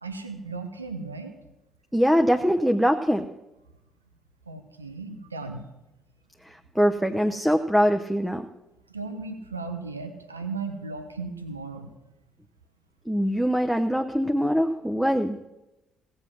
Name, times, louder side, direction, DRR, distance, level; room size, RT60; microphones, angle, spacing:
voice 1, 0.0-1.4 4.5-5.7 8.9-11.9, right 4 dB, 90° right, 7 dB, 0.8 m, -36 dB
voice 2, 1.9-3.3 6.5-8.5 13.1-15.4, equal, ahead, 5 dB, 0.8 m, -23 dB
16.5 x 7.7 x 6.1 m, 0.96 s
figure-of-eight pair, 50°, 0 cm